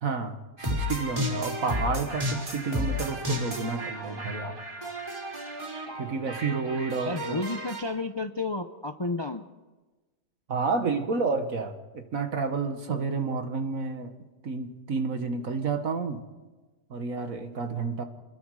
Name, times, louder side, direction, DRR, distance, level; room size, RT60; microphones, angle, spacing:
voice 1, 0.0-4.6 6.0-7.4 10.5-14.1 14.4-16.2 16.9-18.0, right 4 dB, 55° right, 7 dB, 1.9 m, -30 dB
sound 1, 0.6-7.8, left 1 dB, 20° right, 4.7 m, -33 dB
voice 2, 7.0-9.4, left 2 dB, 30° left, 7 dB, 0.5 m, -31 dB
28.0 x 21.5 x 4.9 m, 1.2 s
omnidirectional pair, 1.8 m